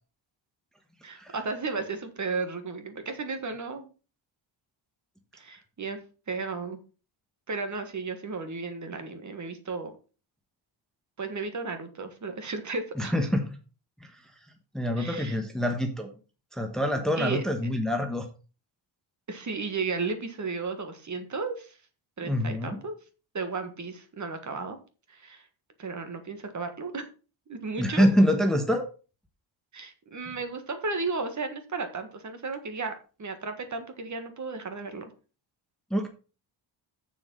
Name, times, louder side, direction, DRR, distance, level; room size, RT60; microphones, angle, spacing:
voice 1, 1.0-3.9 5.3-6.0 6.3-6.8 7.5-9.9 11.2-13.1 15.0-15.4 17.2-17.4 19.3-21.8 22.2-23.0 23.3-24.8 25.1-25.4 25.8-27.1 27.5-28.1 29.7-35.1, right 4 dB, 35° right, 7 dB, 1.6 m, -34 dB
voice 2, 13.0-13.4 14.7-16.1 16.5-18.3 22.2-22.8 27.8-28.8 35.9-36.1, equal, ahead, 4 dB, 1.2 m, -25 dB
7.2 x 7.0 x 5.4 m, 0.35 s
cardioid pair, 145°, 49 cm